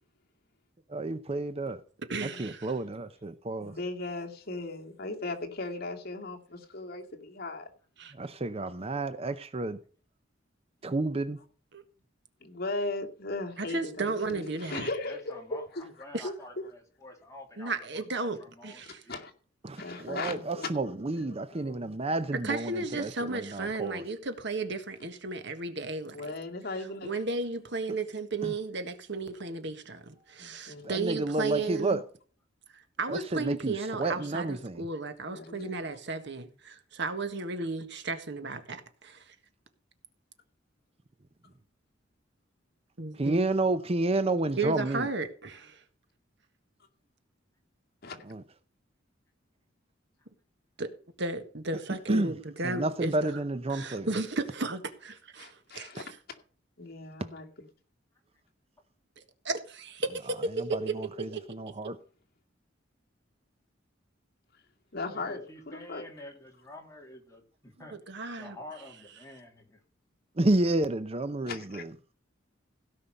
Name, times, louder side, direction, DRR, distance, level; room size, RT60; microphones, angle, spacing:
voice 1, 0.9-1.8 2.2-3.7 8.2-9.8 10.8-11.4 19.6-24.0 28.4-28.5 30.8-32.0 33.1-33.7 34.0-34.8 43.2-45.1 48.3-48.4 52.1-52.3 52.6-54.1 60.6-62.0 70.4-71.9, right 2 dB, 30° right, 0.7 m, -30 dB
voice 2, 2.0-2.7 8.0-8.1 11.7-11.8 13.6-14.9 16.1-16.3 17.6-19.0 22.3-26.3 27.0-32.0 32.7-39.4 43.0-43.5 44.6-45.8 50.8-50.9 51.2-53.3 53.7-56.1 59.5-61.4 68.1-68.6, right 3 dB, 65° right, 1.6 m, -34 dB
voice 3, 3.6-7.7 12.4-15.4 15.7-15.9 16.2-16.3 18.8-19.3 19.8-21.9 26.0-27.1 30.4-30.8 33.3-33.4 35.3-35.8 48.0-48.2 55.4-56.1 56.8-57.7 64.9-66.0 71.5-71.8, left 2 dB, 55° left, 2.3 m, -38 dB
voice 4, 14.8-17.8 18.2-19.2 65.1-68.0 68.4-69.8, left 1 dB, 15° left, 3.0 m, -48 dB
16.5 x 5.6 x 6.6 m
head